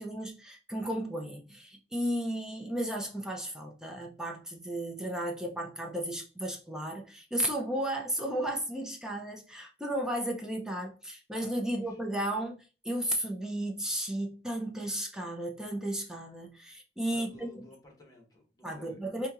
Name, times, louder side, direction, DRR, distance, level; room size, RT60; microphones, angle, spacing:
voice 1, 0.0-17.6 18.6-19.3, right 1 dB, 5° right, 0.5 m, -34 dB
voice 2, 11.7-12.0 17.1-19.0, left 1 dB, 20° left, 1.2 m, -55 dB
4.2 x 2.7 x 2.4 m
head